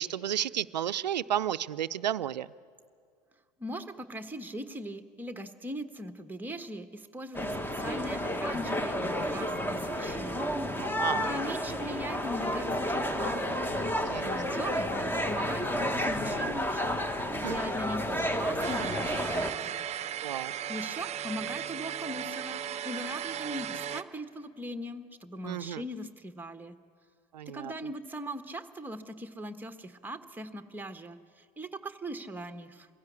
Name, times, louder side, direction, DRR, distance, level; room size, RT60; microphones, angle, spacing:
voice 1, 0.0-2.5 10.8-11.3 14.1-14.4 17.4-17.5 20.2-20.5 25.5-25.8 27.3-27.7, right 10 dB, 85° right, 16 dB, 0.5 m, -32 dB
voice 2, 3.6-13.4 14.2-17.0 17.4-19.8 20.7-26.8 27.5-32.9, equal, 10° right, 8 dB, 1.2 m, -40 dB
sound 1, 7.3-19.5, equal, 10° left, 1.4 m, -31 dB
sound 2, 18.6-24.0, right 9 dB, 30° right, 0.8 m, -36 dB
23.0 x 16.0 x 8.5 m, 2.1 s
hypercardioid pair, 80°, 21 cm